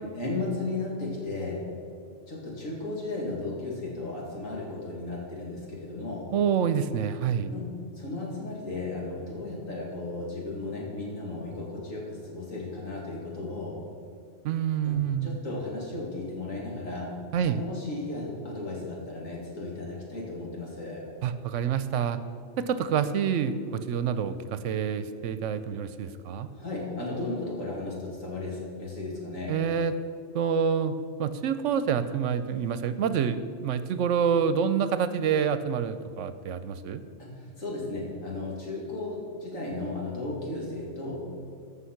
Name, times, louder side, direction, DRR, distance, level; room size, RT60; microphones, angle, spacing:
voice 1, 0.1-1.7 2.3-6.2 7.5-13.8 14.8-17.1 17.4-21.0 26.5-29.6 37.2-41.3, left 2 dB, 85° left, -3 dB, 2.8 m, -35 dB
voice 2, 6.3-7.5 14.4-15.4 17.3-17.6 21.2-22.2 22.6-26.5 29.5-29.9 30.3-37.0, right 7 dB, 75° right, 12 dB, 0.9 m, -27 dB
14.5 x 5.6 x 5.8 m, 2.4 s
omnidirectional pair, 1.3 m